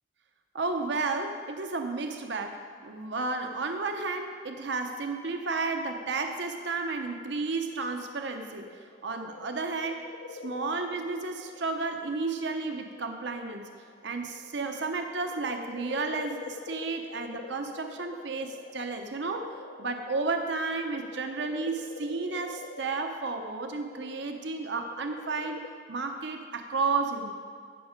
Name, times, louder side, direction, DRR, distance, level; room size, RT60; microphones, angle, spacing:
voice 1, 0.5-8.7 9.0-10.0 10.3-13.6 14.0-25.6 25.9-27.3, right 3 dB, 65° right, 5 dB, 0.8 m, -32 dB
sound 1, 7.3-12.3 12.8-14.5 15.0-25.7, left 4 dB, 80° left, 0.6 m, -46 dB
15.5 x 6.3 x 5.1 m, 2.1 s
head